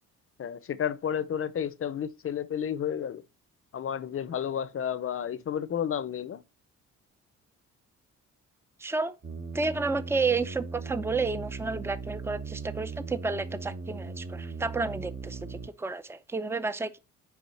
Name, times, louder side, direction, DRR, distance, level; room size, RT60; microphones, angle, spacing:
voice 1, 0.4-3.2 3.7-6.4, left 8 dB, 45° left, 0.7 m, -31 dB
voice 2, 8.8-9.1 9.5-17.0, right 4 dB, 10° right, 0.6 m, -31 dB
sound 1, 9.2-15.7, right 4 dB, 40° right, 1.1 m, -38 dB
7.2 x 4.8 x 4.3 m
cardioid pair, 90°, 30 cm